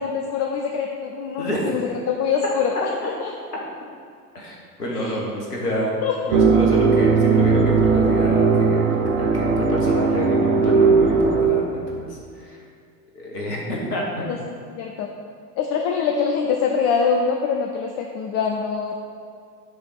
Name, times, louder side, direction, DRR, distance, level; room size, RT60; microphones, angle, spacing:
voice 1, 0.0-1.8 2.1-2.9 3.2-3.3 4.9-5.1 6.0-6.1 14.2-14.4 14.7-15.1 15.6-19.0, left 6 dB, 30° left, 2 dB, 0.5 m, -24 dB
voice 2, 4.3-5.9 6.3-12.6 13.1-14.2, equal, 80° left, -3 dB, 1.3 m, -28 dB
sound 1, 6.3-11.4, right 4 dB, 60° right, 0.9 m, -18 dB
7.9 x 3.4 x 5.7 m, 2.3 s
figure-of-eight pair, 70°, 46 cm